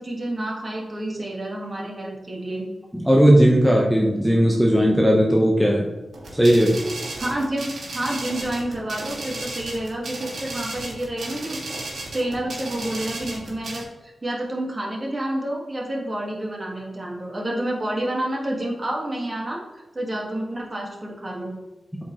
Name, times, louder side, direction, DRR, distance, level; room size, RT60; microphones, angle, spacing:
voice 1, 0.0-2.7 7.2-11.6 12.1-21.5, right 1 dB, 30° right, -1 dB, 1.6 m, -29 dB
voice 2, 3.0-5.9 6.3-6.8, equal, ahead, -2 dB, 0.8 m, -17 dB
sound 1, 6.1-13.8, right 2 dB, 75° right, 2.3 m, -34 dB
8.0 x 4.8 x 3.0 m, 1.1 s
wide cardioid pair, 95°, 0 cm